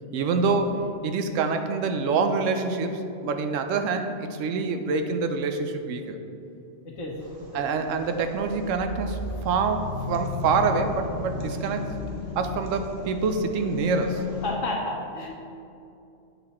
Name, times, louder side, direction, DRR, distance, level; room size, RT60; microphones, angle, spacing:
voice 1, 0.1-6.2 7.5-12.0 12.4-14.3, right 4 dB, 90° right, 7 dB, 1.0 m, -26 dB
sound 1, 7.2-14.5, left 3 dB, 50° right, 1.0 m, -35 dB
voice 2, 14.4-15.3, left 2 dB, 85° left, -1 dB, 1.4 m, -31 dB
7.9 x 4.2 x 4.2 m, 2.6 s
omnidirectional pair, 1.3 m